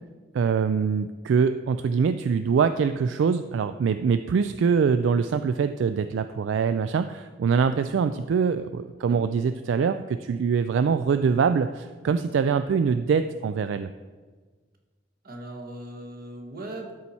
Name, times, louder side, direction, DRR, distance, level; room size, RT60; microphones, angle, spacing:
voice 1, 0.3-13.9, right 6 dB, 70° right, 10 dB, 0.3 m, -24 dB
voice 2, 15.2-16.9, right 1 dB, 50° right, 2 dB, 1.3 m, -38 dB
12.5 x 4.2 x 4.2 m, 1.4 s
head